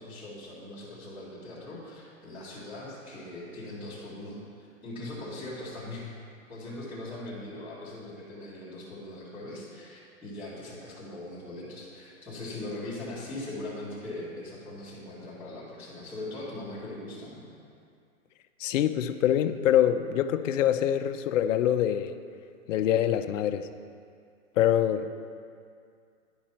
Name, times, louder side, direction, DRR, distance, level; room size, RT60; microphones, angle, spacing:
voice 1, 0.0-6.1 6.5-17.5, left 1 dB, 5° right, -14 dB, 1.4 m, -40 dB
voice 2, 18.6-22.1 22.7-23.7 24.6-25.1, left 10 dB, 65° left, 8 dB, 0.5 m, -25 dB
10.5 x 5.2 x 4.3 m, 2.3 s
hypercardioid pair, 170°, 41 cm